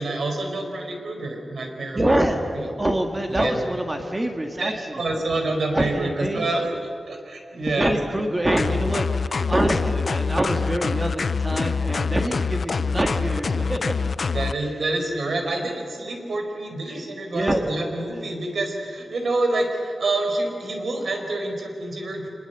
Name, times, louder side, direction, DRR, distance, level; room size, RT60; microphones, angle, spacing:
voice 1, 0.0-2.1 2.5-2.7 3.3-3.5 4.6-6.7 7.1-8.0 14.3-22.3, right 2 dB, 65° right, 3 dB, 4.7 m, -27 dB
voice 2, 1.9-4.8 5.7-6.5 7.7-13.8 16.9-17.0 17.3-17.7, right 1 dB, 20° right, 4 dB, 1.8 m, -25 dB
sound 1, 8.6-14.5, left 5 dB, 50° left, 0.5 m, -25 dB
25.5 x 21.5 x 8.1 m, 2.7 s
wide cardioid pair, 160°, 0 cm